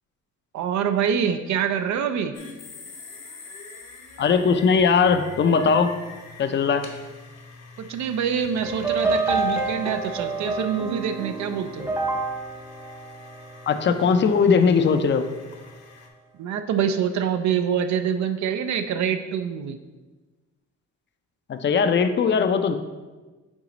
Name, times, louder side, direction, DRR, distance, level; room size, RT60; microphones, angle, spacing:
voice 1, 0.5-2.3 7.8-11.9 16.4-19.8, right 8 dB, 65° right, 8 dB, 0.5 m, -25 dB
sound 1, 2.3-16.1, left 3 dB, 60° left, 1.1 m, -44 dB
voice 2, 4.2-5.9 6.4-6.9 13.7-15.3 21.5-22.7, left 5 dB, 40° left, 9 dB, 0.5 m, -19 dB
sound 2, 8.6-14.0, right 3 dB, 10° right, 0.6 m, -28 dB
6.2 x 3.9 x 3.9 m, 1.3 s
cardioid pair, 90°, 30 cm